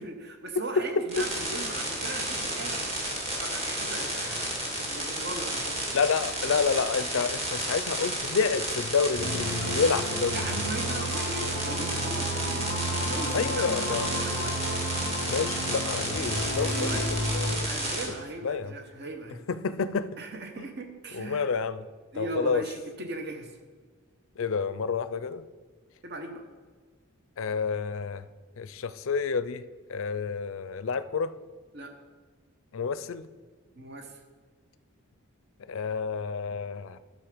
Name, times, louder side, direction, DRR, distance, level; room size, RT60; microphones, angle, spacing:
voice 1, 0.0-5.9 10.3-12.3 12.8-14.6 16.7-17.1 17.6-19.4 20.2-21.5 22.1-23.5 26.0-26.4 31.7-31.9 33.8-34.1, right 2 dB, 50° right, 5 dB, 0.9 m, -38 dB
sound 1, 1.1-18.1, right 1 dB, 30° right, 2.1 m, -32 dB
voice 2, 5.9-10.6 13.3-14.1 15.2-17.7 18.4-18.7 19.5-20.1 20.6-20.7 21.1-21.9 22.1-22.6 24.4-25.4 27.4-28.2 28.6-29.6 29.9-31.3 32.7-33.3 35.7-37.0, left 5 dB, 65° left, 14 dB, 0.4 m, -29 dB
sound 2, 9.1-17.5, equal, 65° right, 2.3 m, -32 dB
10.0 x 6.5 x 5.0 m, 1.4 s
head